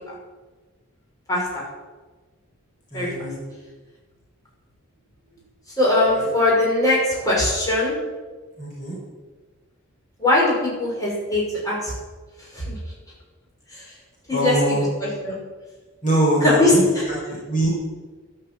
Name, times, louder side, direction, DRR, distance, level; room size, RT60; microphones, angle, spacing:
voice 1, 1.3-1.6 2.9-3.1 5.8-7.9 10.2-11.9 12.4-12.7 13.7-13.9 14.3-14.5 15.0-15.4 16.4-17.1, left 2 dB, 15° left, -5 dB, 5.8 m, -21 dB
voice 2, 2.9-3.4 6.1-6.2 8.6-9.0 14.3-14.8 16.0-16.8 17.1-17.7, equal, 35° left, -4 dB, 4.9 m, -23 dB
12.5 x 11.5 x 7.8 m, 1.3 s
head